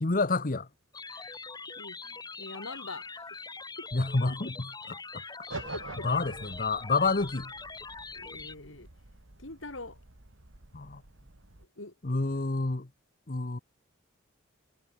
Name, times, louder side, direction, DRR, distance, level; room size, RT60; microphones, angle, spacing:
voice 1, 0.0-0.7 3.9-5.2 6.0-7.5 10.7-11.0 12.0-12.9 13.3-13.6, left 3 dB, 40° left, 1.0 m, -29 dB
sound 1, 0.9-8.5, left 4 dB, 20° left, 3.2 m, -43 dB
voice 2, 1.1-1.4 1.8-3.4 3.8-3.9 4.3-4.4 5.2-6.1 8.1-8.9 9.4-10.0 11.8-11.9, left 2 dB, 70° left, 4.3 m, -44 dB
sound 2, 5.5-11.7, right 2 dB, 70° right, 2.5 m, -47 dB
head